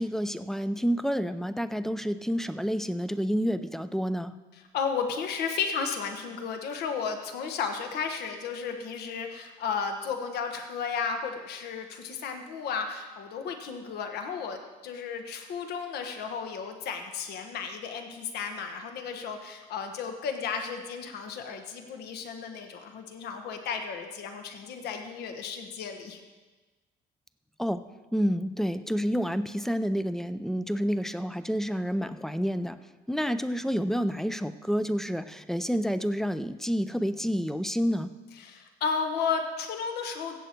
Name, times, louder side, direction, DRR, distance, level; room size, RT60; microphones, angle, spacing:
voice 1, 0.0-4.4 27.6-27.8 28.1-32.8 33.1-38.1, equal, ahead, 12 dB, 0.4 m, -29 dB
voice 2, 4.5-26.2 38.3-40.4, left 6 dB, 75° left, 5 dB, 1.3 m, -33 dB
16.0 x 7.5 x 4.5 m, 1.3 s
cardioid pair, 110°, 17 cm